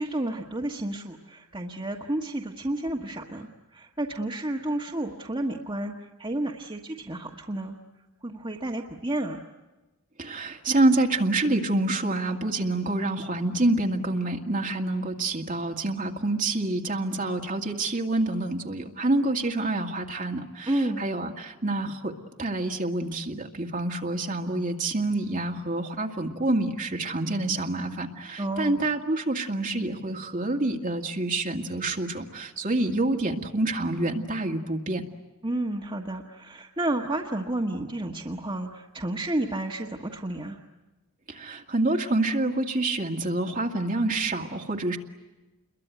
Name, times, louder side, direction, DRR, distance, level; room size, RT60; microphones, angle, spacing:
voice 1, 0.0-7.8 8.2-9.4 20.7-21.0 28.4-28.8 35.4-40.6, right 1 dB, 20° right, -1 dB, 1.4 m, -31 dB
voice 2, 10.2-22.1 22.4-35.0 41.3-45.0, right 2 dB, 35° right, 1 dB, 2.0 m, -27 dB
28.5 x 22.5 x 9.3 m, 1.1 s
head